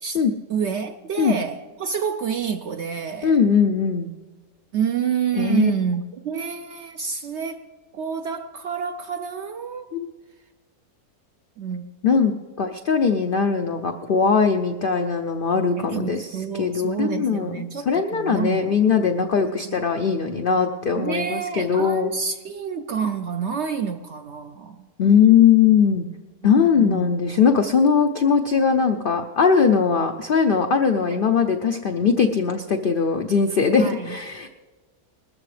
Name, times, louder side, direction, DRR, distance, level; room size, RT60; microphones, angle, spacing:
voice 1, 0.5-3.4 4.7-7.7 7.9-9.9 11.6-11.9 15.8-18.8 19.6-19.8 21.0-24.9 26.4-27.1 31.1-31.2 33.7-34.2, right 7 dB, 65° right, 0.7 m, -28 dB
voice 2, 3.2-4.1 5.3-5.7 9.9-10.1 12.0-17.6 17.9-22.1 25.0-26.0 26.4-34.5, left 6 dB, 70° left, 0.5 m, -20 dB
20.0 x 13.5 x 3.3 m
omnidirectional pair, 1.6 m